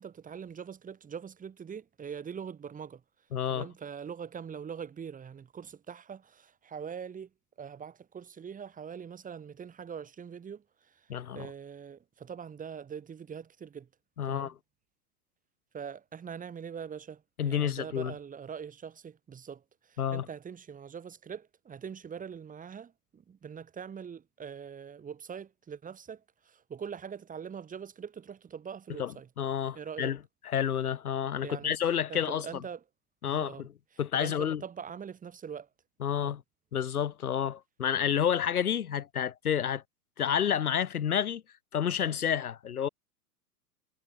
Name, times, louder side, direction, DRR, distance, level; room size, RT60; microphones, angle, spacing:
voice 1, 0.0-3.0 3.5-7.3 7.6-13.9 14.2-14.5 15.7-29.3 29.7-30.1 31.4-31.7 32.1-32.8 33.2-33.7 34.1-35.7 36.2-36.3, right 7 dB, 15° right, 6.5 m, -43 dB
voice 2, 3.3-3.7 11.1-11.5 14.2-14.5 17.4-18.1 20.0-20.3 29.0-30.2 30.4-32.6 33.2-33.7 34.0-34.6 36.0-36.4 36.7-39.8 40.2-41.4 41.7-42.9, left 9 dB, 65° left, 2.5 m, -30 dB
figure-of-eight pair, 100°, 48 cm